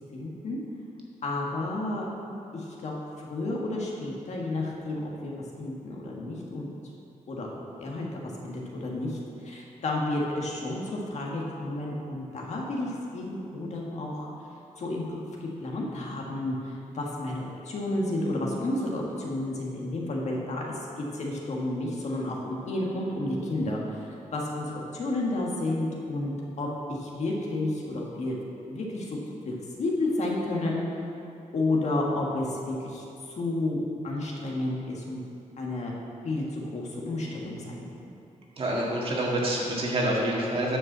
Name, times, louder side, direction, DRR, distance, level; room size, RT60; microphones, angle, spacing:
voice 1, 0.1-0.6 1.2-2.1 2.5-6.7 7.3-7.5 7.8-14.3 14.8-24.0 24.3-26.3 26.6-28.4 28.7-29.2 29.4-29.5 29.8-30.8 31.5-35.2 35.6-35.9 36.2-37.9, left 2 dB, 60° left, -2 dB, 1.6 m, -31 dB
voice 2, 38.6-40.8, right 1 dB, 45° right, -3 dB, 1.8 m, -27 dB
9.6 x 5.3 x 7.3 m, 2.7 s
wide cardioid pair, 165°, 13 cm